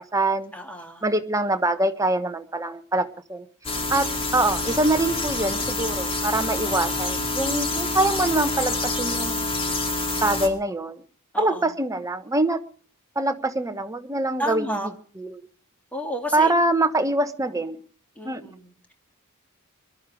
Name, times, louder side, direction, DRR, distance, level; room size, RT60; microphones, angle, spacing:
voice 1, 0.0-0.5 1.0-3.4 3.9-9.5 10.2-11.0 11.4-12.6 13.2-15.4 16.3-17.8 18.2-18.4, right 2 dB, 15° right, 8 dB, 1.1 m, -24 dB
voice 2, 0.5-1.0 11.3-11.6 14.4-14.9 15.9-16.5 18.2-18.6, equal, 5° left, 4 dB, 2.2 m, -31 dB
sound 1, 3.6-10.5, left 2 dB, 25° left, 2.3 m, -27 dB
21.5 x 12.5 x 4.9 m, 0.44 s
head